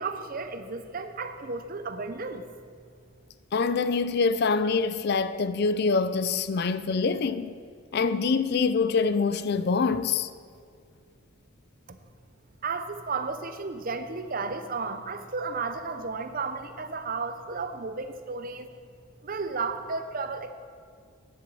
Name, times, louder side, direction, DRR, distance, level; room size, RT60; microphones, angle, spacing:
voice 1, 0.0-2.5 11.9-12.0 12.6-18.7 19.2-20.5, right 4 dB, 40° right, 0.6 m, -33 dB
voice 2, 3.5-7.6 7.9-10.3, left 4 dB, 45° left, 0.4 m, -25 dB
10.5 x 7.1 x 7.7 m
head